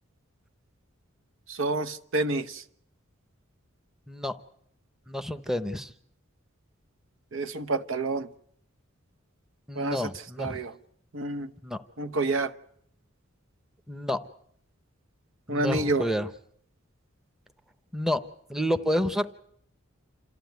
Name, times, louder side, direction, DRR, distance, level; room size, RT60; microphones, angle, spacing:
voice 1, 1.5-2.6 7.3-8.3 9.8-10.1 10.4-10.7 11.1-11.5 12.0-12.5 15.5-16.1, right 2 dB, 70° right, 11 dB, 1.0 m, -28 dB
voice 2, 5.1-5.9 9.7-10.6 11.6-11.8 13.9-14.2 15.5-16.3 17.9-18.2 18.5-19.3, equal, ahead, 9 dB, 0.9 m, -29 dB
27.5 x 14.0 x 9.3 m, 0.69 s
head